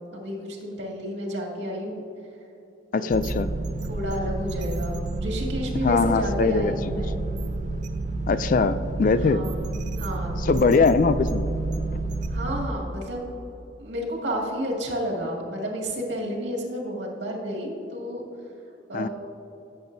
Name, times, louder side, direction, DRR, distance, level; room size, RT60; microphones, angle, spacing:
voice 1, 0.1-2.0 2.9-3.2 3.9-7.2 9.1-9.6 10.0-10.7 12.3-13.3 13.8-18.2 18.9-19.1, equal, 70° right, -2 dB, 2.1 m, -31 dB
voice 2, 2.9-3.5 5.8-7.0 8.3-9.4 10.4-11.4 18.9-19.1, left 4 dB, 45° left, 13 dB, 0.3 m, -21 dB
sound 1, 3.1-12.7, right 2 dB, 40° right, 0.5 m, -29 dB
17.0 x 7.8 x 2.7 m, 3.0 s
head